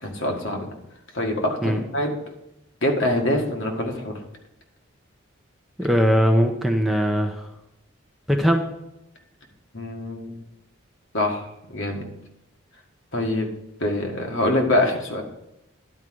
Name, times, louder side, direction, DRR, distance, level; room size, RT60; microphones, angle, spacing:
voice 1, 0.0-0.7 1.1-2.1 2.8-4.2 9.7-10.3 11.1-12.0 13.1-13.5 13.8-15.2, left 1 dB, 65° left, 1 dB, 1.8 m, -24 dB
voice 2, 5.8-7.4 8.3-8.6, equal, ahead, 2 dB, 0.7 m, -20 dB
11.0 x 4.9 x 7.8 m, 0.87 s
head